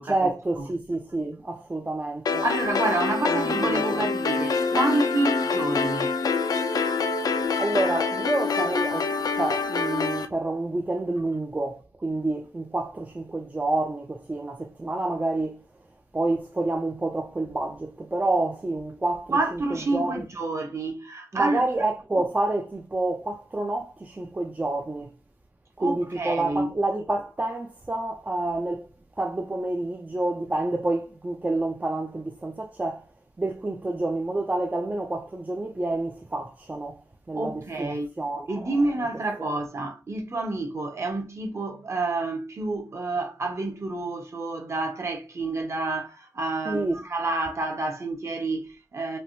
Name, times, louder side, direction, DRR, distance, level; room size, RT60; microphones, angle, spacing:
voice 1, 0.0-2.4 3.3-4.0 7.4-15.6 16.1-20.3 21.3-25.2 25.8-28.9 29.2-33.1 33.4-37.0 37.3-38.8 39.4-39.6 46.7-47.0, right 2 dB, 25° right, 0.4 m, -28 dB
sound 1, 2.3-10.3, left 4 dB, 80° left, 0.4 m, -26 dB
voice 2, 2.4-6.1 19.3-21.9 25.8-26.7 37.3-38.1 38.5-49.2, right 2 dB, 45° right, 0.9 m, -29 dB
3.3 x 2.4 x 2.7 m
wide cardioid pair, 85°, 7 cm